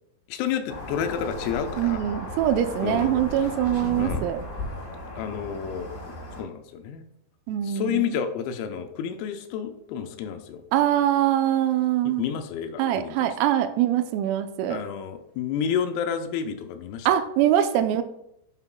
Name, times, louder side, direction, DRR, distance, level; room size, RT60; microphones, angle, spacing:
voice 1, 0.3-2.0 2.8-3.2 4.0-4.3 5.2-5.9 6.4-7.1 7.6-10.6 12.1-13.4 14.7-17.1, left 8 dB, 90° left, 7 dB, 3.5 m, -30 dB
sound 1, 0.7-6.4, left 1 dB, 30° left, 1.9 m, -35 dB
voice 2, 1.8-4.4 7.5-8.1 10.7-12.3 12.8-14.8 17.1-18.0, right 11 dB, 85° right, 8 dB, 3.4 m, -23 dB
9.7 x 8.1 x 2.2 m, 0.77 s
omnidirectional pair, 6.0 m